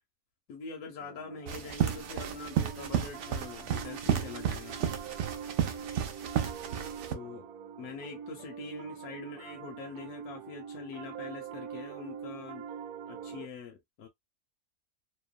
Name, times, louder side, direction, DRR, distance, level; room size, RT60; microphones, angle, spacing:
voice 1, 0.5-4.8 7.1-7.5 7.8-12.6 13.1-14.1, left 5 dB, 75° left, 1.2 m, -44 dB
Piano, 1.0-13.5, right 7 dB, 85° right, 1.1 m, -44 dB
sound 1, 1.5-7.1, right 9 dB, 65° right, 0.8 m, -32 dB
2.9 x 2.2 x 2.3 m
omnidirectional pair, 1.6 m